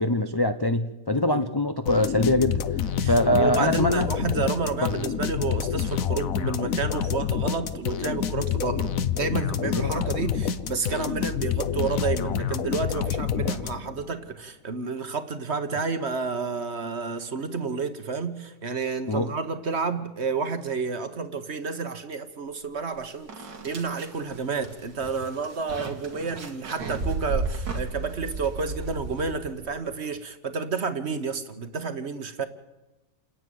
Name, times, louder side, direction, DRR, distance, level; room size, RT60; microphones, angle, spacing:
voice 1, 0.0-2.6 3.0-4.1 4.8-4.9 9.6-9.9 19.1-19.3, left 1 dB, 35° left, 0.3 m, -23 dB
sound 1, 1.9-14.1, left 8 dB, 60° left, 1.1 m, -28 dB
voice 2, 3.0-32.5, right 5 dB, 40° right, 1.3 m, -30 dB
sound 2, 22.8-22.9 23.3-29.6, right 3 dB, 80° right, 2.6 m, -33 dB
29.0 x 10.0 x 9.3 m
omnidirectional pair, 1.8 m